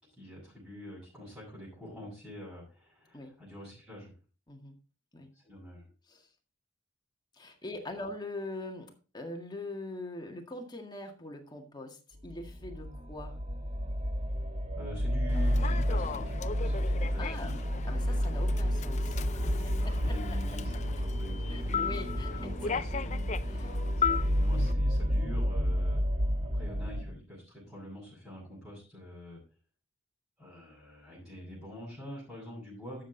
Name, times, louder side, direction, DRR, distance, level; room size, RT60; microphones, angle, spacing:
voice 1, 0.1-4.1 5.3-5.9 14.8-17.5 19.4-21.9 22.3-23.2 23.9-26.0 26.5-29.4 30.4-33.0, left 1 dB, 5° right, -9 dB, 7.0 m, -46 dB
voice 2, 7.3-13.4 17.2-17.5 17.9-20.2 21.5-22.8 23.5-23.8, left 2 dB, 20° left, 3 dB, 1.9 m, -43 dB
sound 1, 12.2-27.0, equal, 35° right, 1.4 m, -31 dB
Human voice / Subway metro underground, 15.3-24.7, left 6 dB, 40° left, 0.5 m, -37 dB
12.5 x 7.7 x 3.9 m, 0.34 s
head